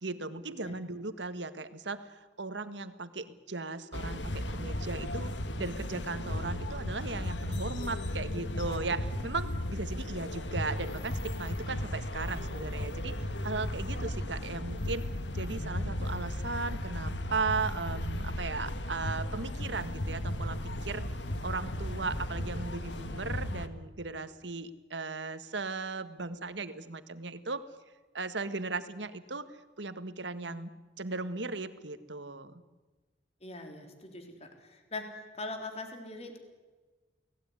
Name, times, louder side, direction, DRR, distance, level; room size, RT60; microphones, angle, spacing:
voice 1, 0.0-5.3 5.6-15.0 15.3-21.0 21.4-27.6 28.1-29.5 29.8-30.7 31.0-32.6, right 3 dB, 85° right, 10 dB, 1.7 m, -37 dB
sound 1, 3.9-23.7, left 1 dB, 85° left, 1.8 m, -35 dB
voice 2, 33.4-35.0 35.4-36.4, left 2 dB, 35° left, 4 dB, 3.9 m, -41 dB
29.5 x 19.0 x 9.8 m, 1.3 s
head